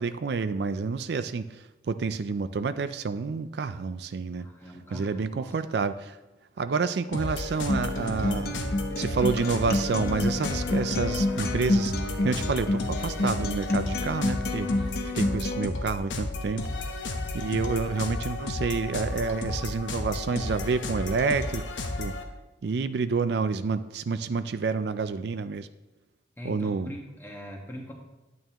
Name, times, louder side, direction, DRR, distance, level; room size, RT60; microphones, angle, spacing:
voice 1, 0.0-4.5 4.9-6.2 6.6-8.5 9.0-11.9 12.2-14.7 15.1-16.7 17.3-21.6 22.0-22.1 22.6-25.7 26.4-26.9, right 4 dB, 65° right, 11 dB, 0.4 m, -29 dB
voice 2, 4.4-5.6 26.4-27.9, equal, 10° left, 0 dB, 1.4 m, -41 dB
sound 1, 7.1-22.2, left 2 dB, 85° left, 0.9 m, -33 dB
Acoustic guitar, 7.7-15.7, left 2 dB, 55° left, 0.8 m, -29 dB
11.0 x 8.9 x 2.9 m, 1.1 s
head